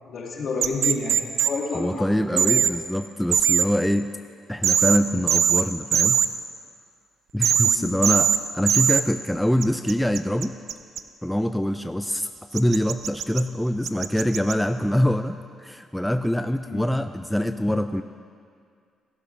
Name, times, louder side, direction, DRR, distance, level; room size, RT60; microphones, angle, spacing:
voice 1, 0.1-2.6 7.6-7.9 16.6-16.9, left 4 dB, 60° left, -1 dB, 2.0 m, -30 dB
sound 1, 0.6-1.5 2.4-2.7 3.3-3.7 4.6-5.0 5.3-5.6 5.9-6.3 7.4-8.4 8.7-9.0 9.6-11.0 12.6-13.4 13.8-14.5, right 8 dB, 70° right, 0.5 m, -20 dB
voice 2, 1.7-4.1 4.5-6.2 7.3-10.5 11.2-18.0, equal, 5° left, 8 dB, 0.4 m, -24 dB
16.5 x 11.0 x 3.3 m, 2.2 s
cardioid pair, 90°, 0 cm